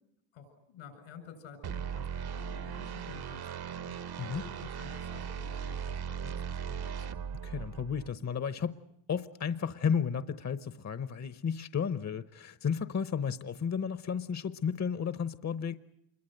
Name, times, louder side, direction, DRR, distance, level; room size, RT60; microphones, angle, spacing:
voice 1, 0.3-4.0 4.4-7.1, left 6 dB, 85° left, 7.3 m, -51 dB
sound 1, 1.6-8.1, right 7 dB, 55° right, 1.1 m, -38 dB
voice 2, 7.4-8.7 9.1-15.7, left 7 dB, 35° left, 1.0 m, -33 dB
27.0 x 22.5 x 7.9 m
supercardioid pair, 65°, 47 cm